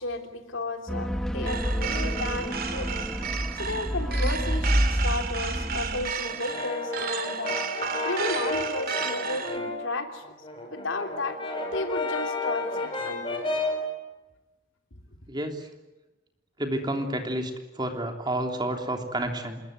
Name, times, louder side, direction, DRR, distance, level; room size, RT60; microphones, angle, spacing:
voice 1, 0.0-2.9 3.5-7.6 8.0-10.2 10.7-13.5, left 2 dB, 75° left, 5 dB, 3.4 m, -33 dB
sound 1, 0.9-6.1, equal, 5° left, 1.1 m, -28 dB
sound 2, 1.5-9.6, right 7 dB, 50° right, 2.2 m, -33 dB
Brass instrument, 6.2-9.9 10.3-13.9, left 2 dB, 25° left, 5.3 m, -32 dB
voice 2, 15.3-15.7 16.6-19.6, right 1 dB, 20° right, 4 dB, 3.2 m, -30 dB
27.0 x 21.5 x 9.5 m, 1.1 s
head